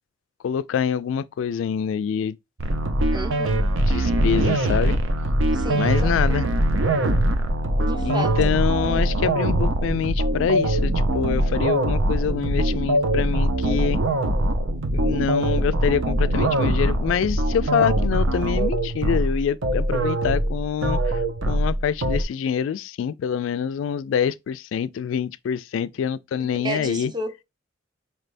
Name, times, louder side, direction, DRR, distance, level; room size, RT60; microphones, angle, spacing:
voice 1, 0.4-2.4 3.9-5.0 5.7-6.5 8.0-14.0 14.9-21.2 21.5-27.1, left 7 dB, 80° left, 0.3 m, -25 dB
sound 1, 2.6-22.2, right 1 dB, 85° right, 0.7 m, -22 dB
voice 2, 3.1-3.6 5.5-6.1 7.8-8.4 26.6-27.4, right 1 dB, 20° right, 0.7 m, -32 dB
4.4 x 3.3 x 2.5 m
head